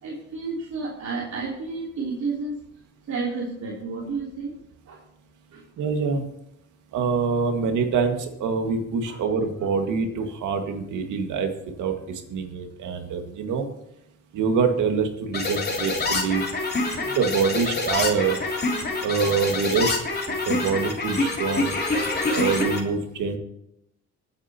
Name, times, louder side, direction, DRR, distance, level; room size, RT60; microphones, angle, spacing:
voice 1, 0.0-2.6 3.1-4.5 4.9-5.0 5.5-5.6 9.0-9.2, right 4 dB, 65° right, -5 dB, 3.3 m, -31 dB
voice 2, 5.8-6.2 6.9-11.5 11.8-12.0 12.3-13.7 14.3-16.4 17.2-18.4 19.0-19.9 20.5-21.8 22.3-23.4, right 5 dB, 80° right, 5 dB, 2.0 m, -25 dB
sound 1, 15.3-22.8, left 3 dB, 35° left, 3.0 m, -26 dB
25.5 x 8.9 x 3.0 m, 0.80 s
cardioid pair, 90°, 30 cm